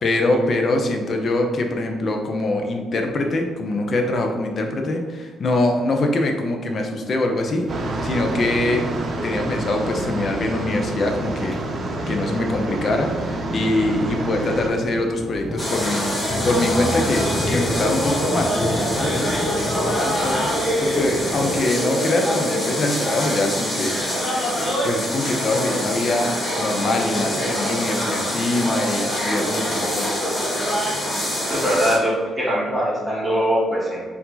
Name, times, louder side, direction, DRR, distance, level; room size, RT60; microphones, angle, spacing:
voice 1, 0.0-8.8 9.2-11.6 12.1-16.2 16.4-24.0 24.3-24.5 24.8-30.2, left 2 dB, 50° left, 3 dB, 0.7 m, -23 dB
sound 1, 7.4-21.6, left 1 dB, 10° left, 0.5 m, -33 dB
sound 2, 7.7-14.7, right 2 dB, 50° right, 0.7 m, -27 dB
sound 3, 15.6-32.0, equal, 25° left, 1.4 m, -24 dB
voice 2, 31.5-34.0, equal, 20° right, -10 dB, 1.3 m, -22 dB
4.5 x 2.7 x 3.9 m, 1.4 s
cardioid pair, 90°, 0 cm